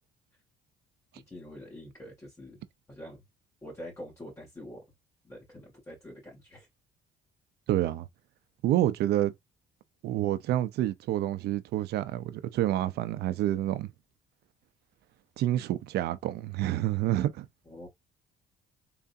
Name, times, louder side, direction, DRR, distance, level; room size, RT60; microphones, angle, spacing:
voice 1, 1.1-2.6 2.9-3.2 3.6-4.9 5.2-6.7 17.7-17.9, equal, 15° left, 2.3 m, -45 dB
voice 2, 7.7-8.1 8.6-9.3 10.0-13.9 15.4-17.5, right 13 dB, 75° right, 0.7 m, -28 dB
3.9 x 3.5 x 2.6 m
cardioid pair, 110°, 17 cm